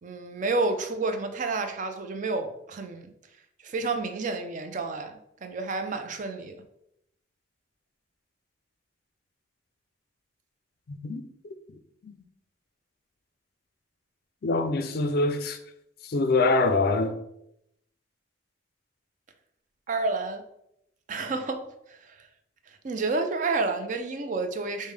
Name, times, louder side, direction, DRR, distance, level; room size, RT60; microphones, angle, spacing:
voice 1, 0.0-3.1 3.6-6.6 19.9-20.4 21.1-22.3 22.7-24.9, right 3 dB, 40° right, 0.4 m, -30 dB
voice 2, 10.9-11.2 12.0-12.2 14.4-15.6 16.0-17.2, left 3 dB, 55° left, 0.4 m, -24 dB
5.1 x 2.1 x 3.3 m
head